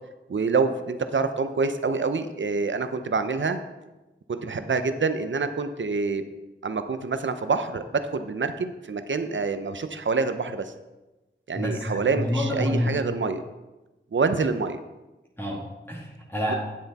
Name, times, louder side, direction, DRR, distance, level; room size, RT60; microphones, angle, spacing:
voice 1, 0.3-3.6 4.3-6.2 6.6-10.7 11.5-13.4 14.1-14.8 16.5-16.6, right 4 dB, 65° right, 9 dB, 0.8 m, -26 dB
voice 2, 11.5-13.0 15.4-16.5, equal, 10° left, -5 dB, 2.1 m, -28 dB
9.6 x 7.7 x 4.2 m, 1.1 s
cardioid pair, 40°, 21 cm